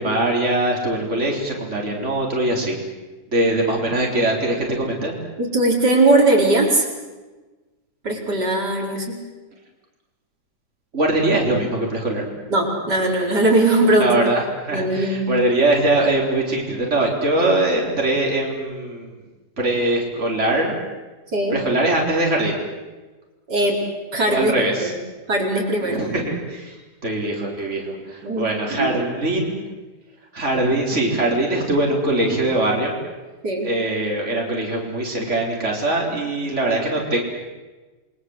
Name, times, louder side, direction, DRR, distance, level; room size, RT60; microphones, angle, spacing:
voice 1, 0.0-2.8 3.3-5.1 10.9-12.2 14.0-19.1 19.6-20.7 21.5-22.6 24.3-24.9 25.8-26.8 27.0-29.6 30.3-32.9 33.6-37.2, right 2 dB, 45° right, -1 dB, 4.5 m, -22 dB
voice 2, 5.4-6.9 8.0-9.2 12.5-14.3 14.7-15.3 21.3-21.6 23.5-23.8 24.1-25.0 25.3-26.0 28.2-28.5 28.8-29.0 33.4-33.7, right 2 dB, 80° right, 0 dB, 5.4 m, -19 dB
29.5 x 23.0 x 8.0 m, 1.2 s
omnidirectional pair, 1.8 m